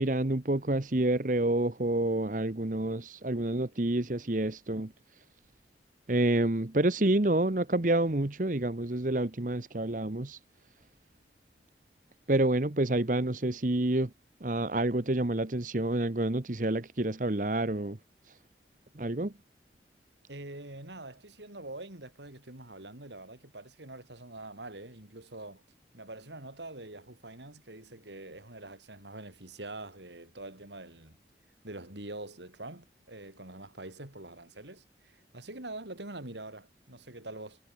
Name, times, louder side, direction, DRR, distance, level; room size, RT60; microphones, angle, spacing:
voice 1, 0.0-4.9 6.1-10.4 12.3-14.1 14.4-18.0 18.3-18.4 18.9-19.3, right 1 dB, 45° right, 1.1 m, -28 dB
voice 2, 20.3-25.6 25.9-31.2 31.6-37.6, right 2 dB, 80° right, 5.1 m, -45 dB
head